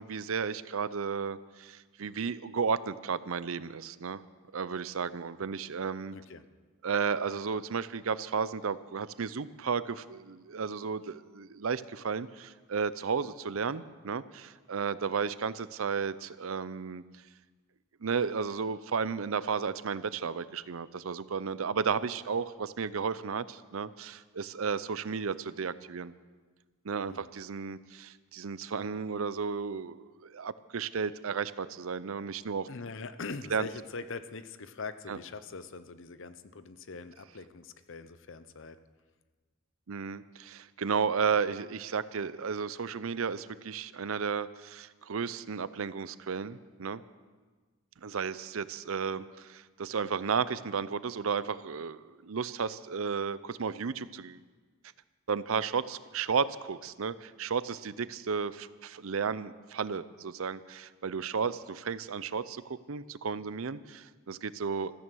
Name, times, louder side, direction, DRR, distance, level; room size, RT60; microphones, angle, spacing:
voice 1, 0.0-4.2 4.5-6.2 6.8-17.0 18.0-26.1 26.8-32.7 33.5-33.7 35.1-35.2 39.9-47.0 48.0-54.4 55.3-64.9, right 5 dB, 70° right, 16 dB, 0.6 m, -33 dB
voice 2, 6.1-6.4 27.1-27.2 32.7-38.8, left 4 dB, 60° left, 12 dB, 0.8 m, -42 dB
16.0 x 14.5 x 6.3 m, 1.4 s
head